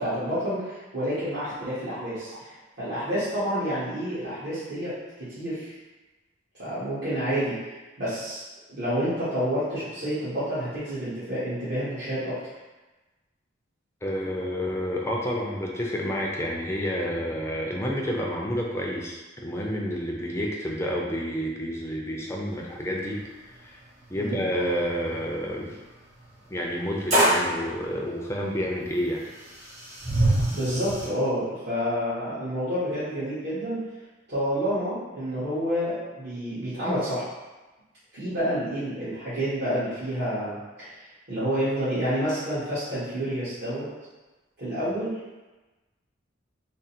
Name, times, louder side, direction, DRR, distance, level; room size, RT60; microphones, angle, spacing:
voice 1, 0.0-2.5 2.8-4.9 5.2-5.7 6.6-8.4 8.7-12.4 24.1-24.4 30.5-33.8 34.3-37.3 38.1-43.9 44.6-45.2, equal, 60° right, -14 dB, 1.3 m, -29 dB
voice 2, 14.0-23.2 23.6-23.8 24.1-25.8 26.5-29.2, equal, 15° left, -2 dB, 0.5 m, -29 dB
sound 1, 22.8-22.9 23.2-23.3 24.0-24.1 26.2-26.3 27.1-27.5 28.7-28.8 29.3-31.1, right 1 dB, 35° right, 1.1 m, -24 dB
3.7 x 2.0 x 4.2 m, 1.2 s
head